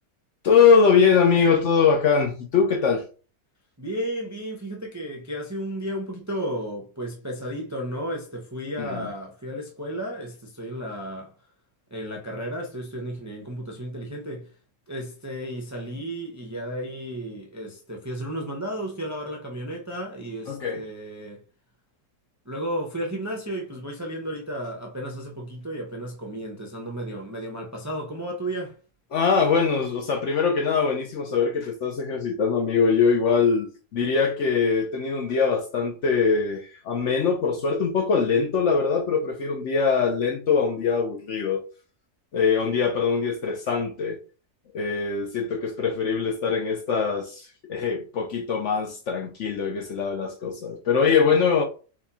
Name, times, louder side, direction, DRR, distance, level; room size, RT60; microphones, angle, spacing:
voice 1, 0.4-3.0 8.8-9.1 20.5-20.8 29.1-41.6 42.3-44.2 44.7-51.6, left 5 dB, 60° left, 0.8 m, -22 dB
voice 2, 3.8-11.3 11.9-14.5 14.9-21.4 22.5-28.8, right 1 dB, 20° right, 0.5 m, -33 dB
4.2 x 2.9 x 4.0 m
omnidirectional pair, 1.7 m